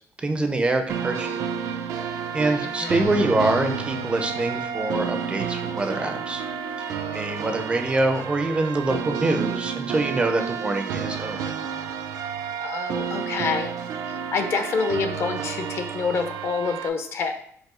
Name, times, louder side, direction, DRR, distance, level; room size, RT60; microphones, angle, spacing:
voice 1, 0.2-1.7 2.3-6.4 7.1-11.5, right 2 dB, 20° right, 6 dB, 0.4 m, -25 dB
sound 1, 0.9-16.9, right 7 dB, 90° right, 0.4 m, -31 dB
voice 2, 2.6-3.1 12.6-13.7 14.1-17.4, left 5 dB, 50° left, 7 dB, 0.5 m, -27 dB
sound 2, 3.0-8.8, right 2 dB, 75° left, 0.9 m, -40 dB
4.7 x 2.6 x 3.7 m, 0.65 s
cardioid pair, 160°, 6 cm